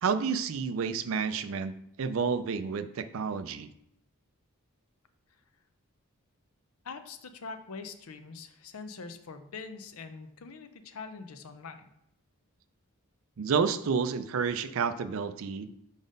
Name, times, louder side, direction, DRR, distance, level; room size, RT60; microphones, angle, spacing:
voice 1, 0.0-3.7 13.4-15.7, right 5 dB, 65° right, 11 dB, 0.4 m, -30 dB
voice 2, 6.8-11.9, left 4 dB, 75° left, 9 dB, 0.6 m, -43 dB
5.0 x 3.9 x 5.2 m, 0.77 s
head